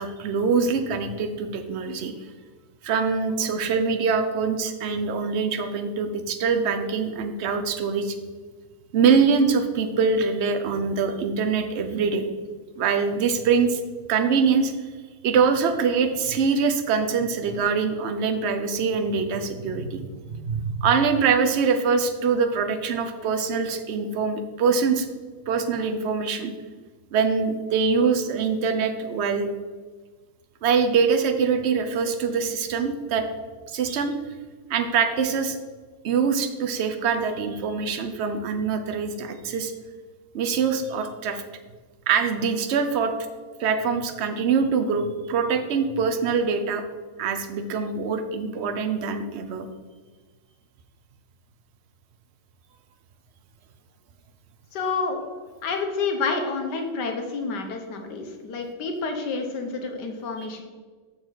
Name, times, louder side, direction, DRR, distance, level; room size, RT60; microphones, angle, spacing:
voice 1, 0.0-2.1 2.8-8.2 8.9-12.3 12.8-13.8 14.1-14.7 15.2-25.1 25.5-26.5 27.1-29.5 30.6-33.2 33.7-34.1 34.7-35.6 36.0-39.7 40.3-41.4 42.1-43.1 43.6-46.8 47.2-49.7 60.4-60.5, right 5 dB, 55° right, 7 dB, 0.8 m, -24 dB
voice 2, 54.7-55.2 55.6-60.6, left 4 dB, 85° left, 4 dB, 1.6 m, -29 dB
7.1 x 6.6 x 4.0 m, 1.4 s
omnidirectional pair, 1.8 m